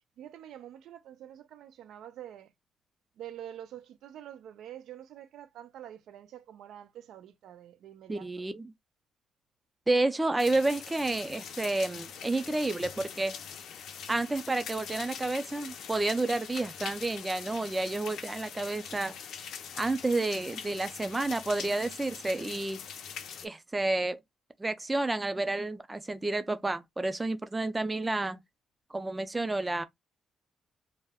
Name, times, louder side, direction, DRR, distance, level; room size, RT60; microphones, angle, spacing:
voice 1, 0.2-2.5 3.2-8.5 27.9-28.1, right 11 dB, 85° right, 0.4 m, -47 dB
voice 2, 8.1-8.7 9.9-13.4 14.1-19.1 19.7-22.8 23.4-24.2 24.6-28.4 28.9-29.8, right 2 dB, 15° right, 0.4 m, -30 dB
sound 1, 10.4-23.5, left 7 dB, 80° left, 0.5 m, -43 dB
2.3 x 2.0 x 3.4 m
cardioid pair, 135°, 0 cm